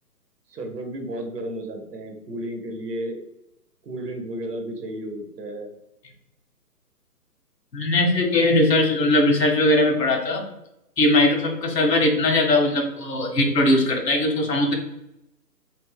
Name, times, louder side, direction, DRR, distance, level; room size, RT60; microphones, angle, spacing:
voice 1, 0.5-3.2 3.8-5.7, right 1 dB, 75° right, 4 dB, 0.9 m, -33 dB
voice 2, 7.7-10.4 11.0-14.7, left 1 dB, 80° left, 3 dB, 1.0 m, -20 dB
2.7 x 2.1 x 3.5 m, 0.85 s
hypercardioid pair, 170°, 49 cm